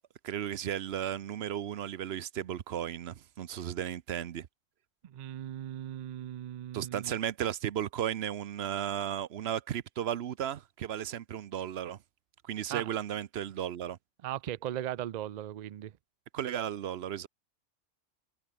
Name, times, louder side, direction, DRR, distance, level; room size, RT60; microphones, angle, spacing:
voice 1, 0.2-4.5 6.7-12.0 12.4-14.0 16.3-17.3, right 10 dB, 60° right, 0.9 m, -35 dB
voice 2, 5.0-7.2 12.7-12.9 14.2-15.9, right 11 dB, 85° right, 0.3 m, -38 dB
omnidirectional pair, 1.3 m